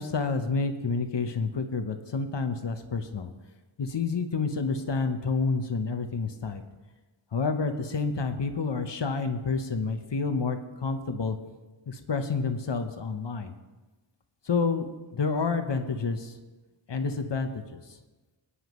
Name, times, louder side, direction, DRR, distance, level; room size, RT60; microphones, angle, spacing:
voice 1, 0.0-3.3 3.8-6.6 7.3-11.4 11.9-13.5 14.4-16.3 16.9-17.8, left 4 dB, 60° left, 7 dB, 1.0 m, -29 dB
19.5 x 9.9 x 3.1 m, 1.2 s
wide cardioid pair, 70°, 48 cm